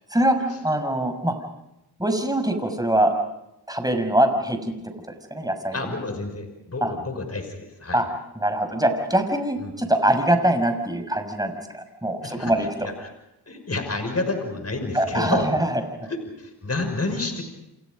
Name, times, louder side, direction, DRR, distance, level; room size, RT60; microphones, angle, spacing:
voice 1, 0.1-1.4 2.0-3.1 3.7-4.7 5.3-5.8 6.8-6.9 7.9-8.1 8.4-12.7 14.9-15.8, right 1 dB, 10° right, 6 dB, 6.2 m, -23 dB
voice 2, 5.7-8.0 9.6-9.7 12.2-12.5 12.8-13.1 13.5-15.5 16.0-17.4, left 3 dB, 35° left, 6 dB, 5.8 m, -29 dB
30.0 x 27.5 x 5.3 m, 0.87 s
cardioid pair, 55°, 41 cm